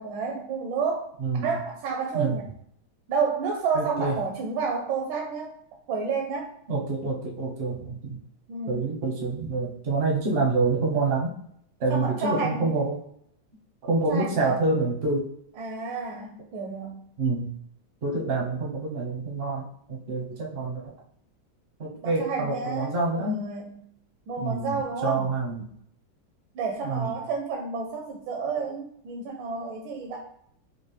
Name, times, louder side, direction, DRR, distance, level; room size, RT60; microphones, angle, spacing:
voice 1, 0.0-1.1 1.4-2.4 3.1-5.5 5.9-6.5 8.5-8.8 11.9-12.8 14.1-14.6 15.6-17.0 22.0-23.8 24.3-25.3 26.5-30.2, right 5 dB, 80° right, 1 dB, 1.3 m, -30 dB
voice 2, 1.2-1.5 2.1-2.4 3.7-4.2 6.7-8.2 8.7-11.3 11.8-13.0 13.9-15.3 17.2-17.5 18.0-19.6 19.9-20.9 21.8-23.4 24.4-24.8 25.0-25.7 26.8-27.1, right 3 dB, 55° right, 0 dB, 0.6 m, -27 dB
4.4 x 2.5 x 3.1 m, 0.68 s
omnidirectional pair, 2.1 m